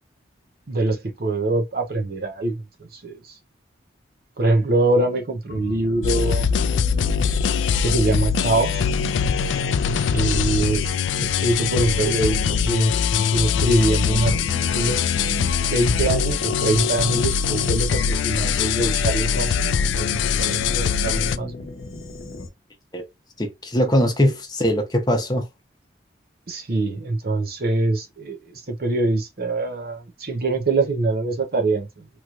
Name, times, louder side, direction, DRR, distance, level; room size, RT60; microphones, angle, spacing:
voice 1, 0.7-3.3 4.4-6.5 7.8-8.9 10.1-14.4 14.7-15.0 15.7-21.7 26.5-32.1, right 2 dB, 55° right, 0.6 m, -24 dB
sound 1, 5.5-22.5, left 2 dB, 65° left, 0.7 m, -37 dB
sound 2, 6.0-21.4, left 7 dB, 90° left, 0.3 m, -22 dB
voice 2, 23.4-25.5, equal, 20° left, 0.8 m, -21 dB
3.0 x 2.9 x 2.4 m
head